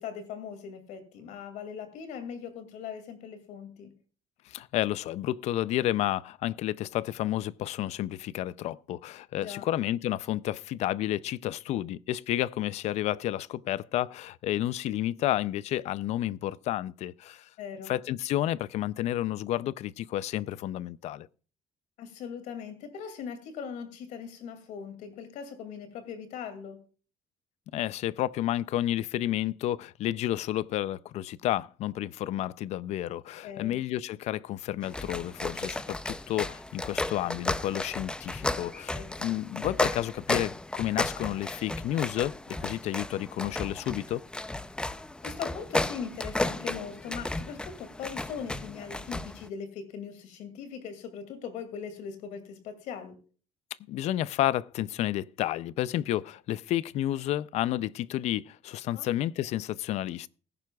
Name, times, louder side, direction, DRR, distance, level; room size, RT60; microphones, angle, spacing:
voice 1, 0.0-3.9 9.3-9.7 17.6-17.9 22.0-26.8 33.4-33.8 38.9-39.4 45.2-53.2 58.9-59.1, left 7 dB, 85° left, 2.4 m, -40 dB
voice 2, 4.5-17.5 17.9-21.3 27.7-44.2 53.9-60.3, left 13 dB, 65° left, 0.5 m, -31 dB
sound 1, 34.8-49.5, left 2 dB, 5° left, 0.4 m, -34 dB
19.5 x 10.5 x 2.3 m
cardioid pair, 155°, 12 cm